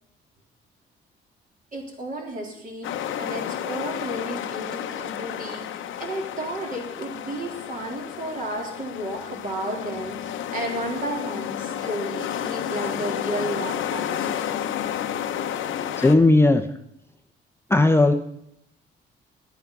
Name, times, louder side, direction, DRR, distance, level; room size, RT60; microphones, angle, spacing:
voice 1, 1.7-14.6, right 1 dB, 45° right, 0 dB, 3.7 m, -33 dB
sound 1, 2.8-16.1, left 10 dB, 80° left, 0.9 m, -31 dB
voice 2, 16.0-16.6 17.7-18.1, left 2 dB, 10° left, 5 dB, 0.7 m, -16 dB
11.5 x 9.2 x 6.0 m, 0.77 s
cardioid pair, 90°, 20 cm